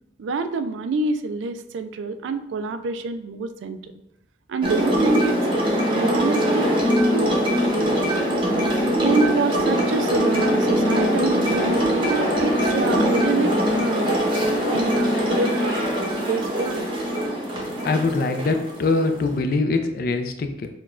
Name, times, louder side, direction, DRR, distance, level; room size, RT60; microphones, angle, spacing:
voice 1, 0.2-3.8 4.5-5.4 5.9-6.7 7.1-7.4 9.0-14.2 14.7-15.8 16.3-16.9, right 4 dB, 85° right, 9 dB, 0.3 m, -27 dB
sound 1, 4.6-19.4, equal, 30° right, 0.7 m, -22 dB
sound 2, 9.7-15.2, left 1 dB, 75° left, 1.2 m, -33 dB
voice 2, 17.8-20.7, left 3 dB, 50° left, 6 dB, 0.3 m, -23 dB
5.9 x 2.2 x 2.4 m, 0.90 s
head